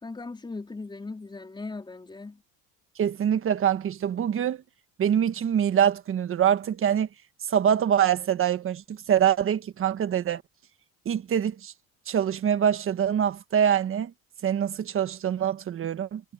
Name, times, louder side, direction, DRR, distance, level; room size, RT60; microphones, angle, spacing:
voice 1, 0.0-2.4, left 3 dB, 15° left, 4.3 m, -38 dB
voice 2, 3.0-4.6 5.0-7.1 7.5-10.4 11.0-11.7 12.1-14.1 14.4-16.2, right 9 dB, 40° right, 1.6 m, -24 dB
cardioid pair, 120°, 31 cm